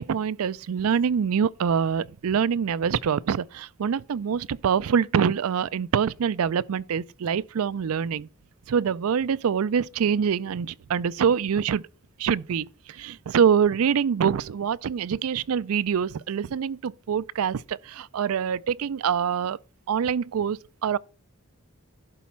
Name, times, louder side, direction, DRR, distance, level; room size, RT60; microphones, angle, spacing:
voice 1, 0.0-8.3 8.7-11.8 12.2-19.6 19.9-21.0, right 7 dB, 85° right, 0.4 m, -25 dB
11.5 x 4.1 x 5.8 m
head